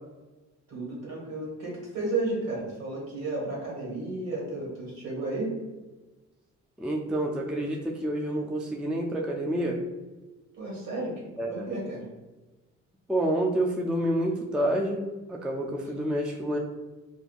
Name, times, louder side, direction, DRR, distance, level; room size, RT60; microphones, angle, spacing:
voice 1, 0.7-5.5 10.6-11.2 11.5-12.0, right 2 dB, 60° right, -3 dB, 1.5 m, -33 dB
voice 2, 6.8-9.8 11.4-11.7 13.1-16.6, right 1 dB, 5° right, 1 dB, 0.3 m, -28 dB
3.7 x 2.6 x 2.4 m, 1.2 s
cardioid pair, 90°, 30 cm